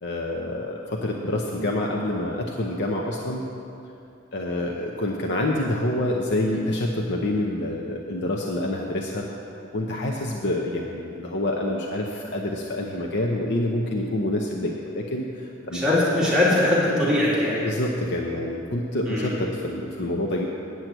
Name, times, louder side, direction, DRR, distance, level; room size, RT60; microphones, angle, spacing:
voice 1, 0.0-3.4 4.3-9.3 9.7-16.0 17.6-20.5, left 1 dB, 55° left, 0 dB, 0.7 m, -27 dB
voice 2, 15.7-17.6 19.1-19.3, left 1 dB, 5° right, -9 dB, 2.2 m, -21 dB
9.1 x 6.1 x 8.0 m, 2.7 s
head